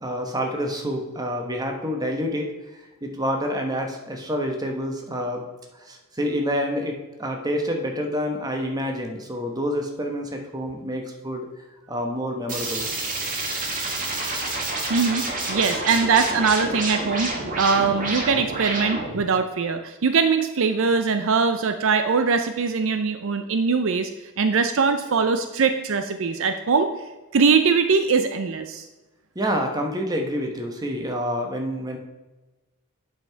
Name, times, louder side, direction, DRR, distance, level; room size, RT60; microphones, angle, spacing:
voice 1, 0.0-2.5 3.0-5.4 5.8-11.5 11.9-12.9 29.3-32.0, equal, 15° right, 2 dB, 1.0 m, -28 dB
sound 1, 12.5-19.2, right 2 dB, 35° right, 1.5 m, -29 dB
voice 2, 14.9-24.1 24.4-26.9 27.3-28.8, right 5 dB, 60° right, 8 dB, 0.5 m, -22 dB
8.7 x 5.6 x 4.5 m, 1.1 s
head